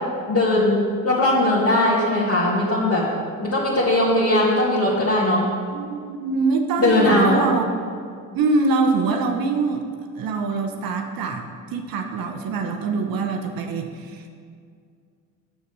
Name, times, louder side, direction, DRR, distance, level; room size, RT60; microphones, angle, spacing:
voice 1, 0.3-3.0 3.4-5.5 6.8-7.4, left 1 dB, 35° left, -7 dB, 2.0 m, -19 dB
voice 2, 5.7-7.7 8.3-9.8 10.2-14.3, right 4 dB, 50° right, 4 dB, 1.0 m, -24 dB
7.0 x 6.6 x 6.2 m, 2.2 s
hypercardioid pair, 55°, 44 cm